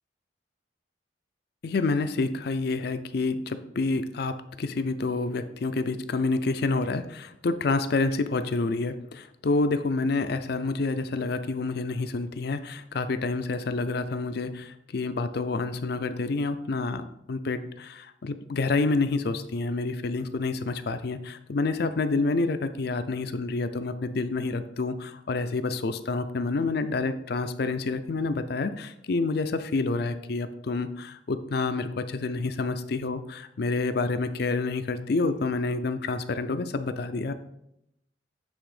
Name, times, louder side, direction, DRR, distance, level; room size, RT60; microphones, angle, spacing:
voice 1, 1.6-37.3, left 3 dB, 60° left, 10 dB, 0.5 m, -28 dB
8.1 x 3.5 x 4.9 m, 0.81 s
head